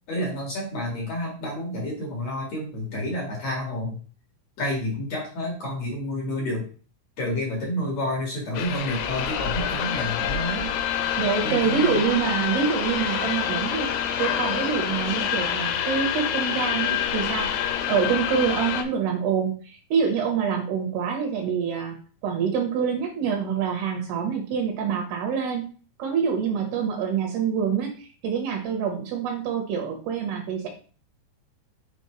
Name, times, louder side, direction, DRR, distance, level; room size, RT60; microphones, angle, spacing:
voice 1, 0.1-4.0 4.6-6.7 7.2-10.7 11.4-12.0, left 1 dB, 55° left, -2 dB, 2.0 m, -29 dB
sound 1, 8.5-18.8, left 9 dB, 75° left, 2.5 m, -27 dB
voice 2, 11.2-22.0 22.2-25.6 26.0-30.7, right 6 dB, 75° right, 2 dB, 2.8 m, -26 dB
6.9 x 5.1 x 3.1 m, 0.39 s
omnidirectional pair, 5.3 m